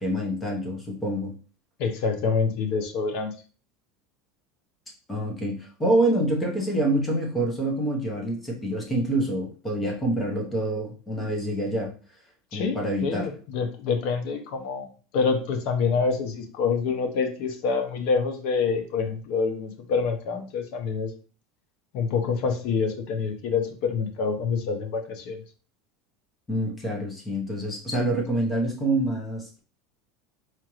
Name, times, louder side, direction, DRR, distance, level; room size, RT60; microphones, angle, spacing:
voice 1, 0.0-1.3 5.1-11.9 12.5-13.3 26.5-29.6, right 1 dB, 10° left, 0 dB, 0.9 m, -26 dB
voice 2, 1.8-3.3 12.5-14.9 15.1-21.1 21.9-25.4, left 5 dB, 55° left, 5 dB, 0.7 m, -26 dB
4.3 x 2.5 x 3.0 m, 0.38 s
supercardioid pair, 155°, 0 cm